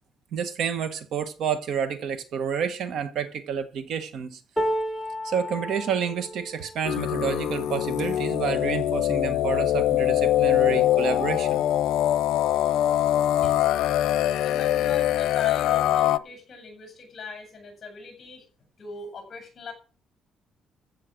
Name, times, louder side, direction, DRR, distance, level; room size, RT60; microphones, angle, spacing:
voice 1, 0.3-4.4 5.2-11.6, right 7 dB, 55° right, 1.3 m, -29 dB
sound 1, 4.6-10.7 11.3-11.5 11.8-12.5 13.5-13.6, equal, 5° left, 1.6 m, -35 dB
sound 2, 6.8-16.2, left 13 dB, 90° left, 0.6 m, -23 dB
voice 2, 14.4-18.4 18.8-19.7, left 4 dB, 30° left, 7.7 m, -40 dB
15.0 x 7.7 x 6.3 m
cardioid pair, 170°, 0 cm